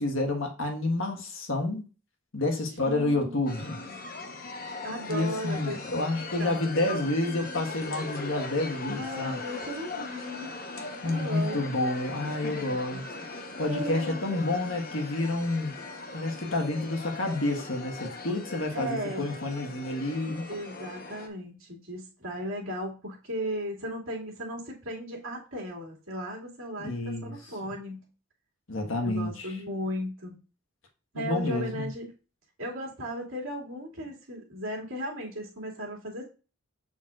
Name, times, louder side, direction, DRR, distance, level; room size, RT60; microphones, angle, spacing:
voice 1, 0.0-1.8 2.3-3.8 5.1-9.3 11.0-13.0 13.3-15.7 16.1-20.5 26.8-27.3 28.7-29.5 31.1-31.9, left 2 dB, 65° left, 1.5 m, -29 dB
voice 2, 2.8-3.3 3.8-4.0 4.8-5.8 6.4-7.0 8.9-10.5 10.7-11.7 12.4-12.5 13.6-14.2 18.7-19.2 20.5-28.1 29.0-30.3 31.1-32.1 32.6-36.2, equal, 70° right, 2.5 m, -36 dB
sound 1, 3.5-21.3, left 3 dB, 40° left, 1.0 m, -39 dB
7.0 x 6.4 x 2.5 m
head